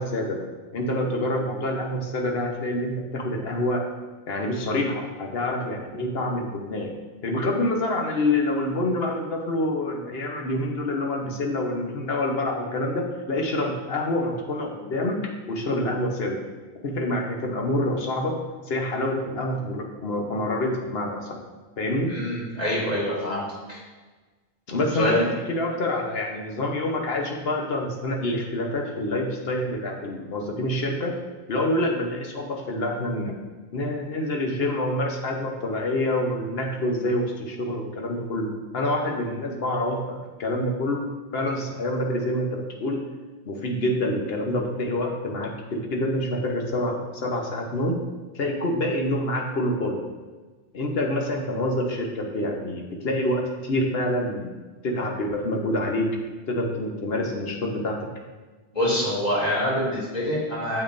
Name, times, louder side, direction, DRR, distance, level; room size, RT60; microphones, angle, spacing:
voice 1, 0.0-3.8 4.3-7.0 7.2-16.4 16.8-18.4 18.7-21.4 21.8-22.1 24.7-31.1 31.5-33.3 33.7-41.0 41.3-43.0 43.5-48.0 48.3-50.0 50.7-54.5 54.8-56.1 56.5-58.1, left 1 dB, 65° left, 1 dB, 1.3 m, -27 dB
voice 2, 22.1-23.4 23.7-23.8 24.9-25.2 58.7-60.8, equal, 40° left, -6 dB, 2.7 m, -25 dB
8.5 x 7.1 x 2.6 m, 1.3 s
omnidirectional pair, 1.1 m